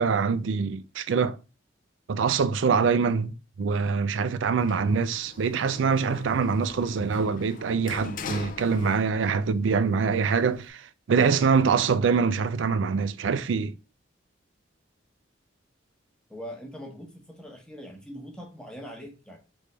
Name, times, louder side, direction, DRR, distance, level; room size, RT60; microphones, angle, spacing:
voice 1, 0.0-1.4 2.1-13.7, right 5 dB, 85° right, 0.4 m, -24 dB
Sliding door, 4.6-9.4 9.8-10.7, left 4 dB, 45° left, 0.4 m, -41 dB
voice 2, 16.3-19.4, equal, 5° left, 0.9 m, -42 dB
3.9 x 3.4 x 3.2 m
head